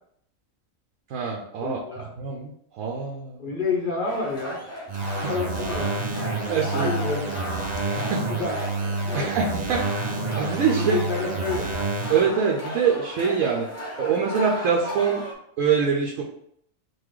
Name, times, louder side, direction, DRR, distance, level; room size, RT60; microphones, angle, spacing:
voice 1, 1.1-1.8 2.2-3.4 5.0-5.3 6.5-6.9 7.8-8.2 9.1-10.9 12.1-13.7 14.0-15.2 15.6-16.2, right 6 dB, 75° right, -2 dB, 1.0 m, -24 dB
voice 2, 1.6-2.1 3.4-4.6 5.2-6.0 6.7-7.4 8.3-8.6 9.0-9.3 10.8-11.8, left 4 dB, 35° left, -3 dB, 1.4 m, -29 dB
sound 1, 4.1-15.3, left 1 dB, 15° left, 0.9 m, -36 dB
sound 2, 4.9-12.3, right 3 dB, 50° right, 0.5 m, -29 dB
sound 3, 6.5-8.0, left 3 dB, 55° left, 0.4 m, -38 dB
3.9 x 2.6 x 4.7 m, 0.70 s
omnidirectional pair, 1.4 m